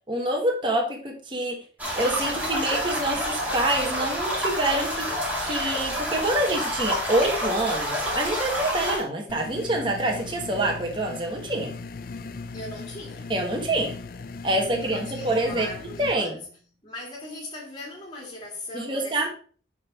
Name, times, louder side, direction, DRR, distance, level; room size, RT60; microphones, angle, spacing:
voice 1, 0.1-1.6 1.9-5.1 5.4-11.7 13.3-13.9 14.4-15.7 16.0-16.4 18.7-19.3, right 1 dB, 25° right, 1.2 m, -26 dB
sound 1, 1.8-9.0, equal, 10° right, 2.3 m, -28 dB
sound 2, 9.3-16.2, left 4 dB, 50° left, 0.4 m, -38 dB
voice 2, 12.5-13.3 14.8-16.5 16.8-19.3, left 1 dB, 25° left, 1.9 m, -39 dB
10.5 x 3.6 x 4.1 m
head